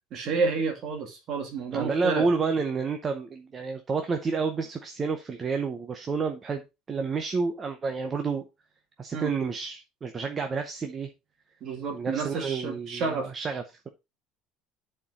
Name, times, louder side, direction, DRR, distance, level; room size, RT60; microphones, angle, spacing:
voice 1, 0.1-2.3 9.1-9.4 11.6-13.3, right 4 dB, 40° right, 2.1 m, -30 dB
voice 2, 1.7-6.6 6.9-8.4 9.0-11.1 11.9-13.6, right 4 dB, 20° right, 0.7 m, -29 dB
10.5 x 4.4 x 4.1 m
cardioid pair, 175°, 0 cm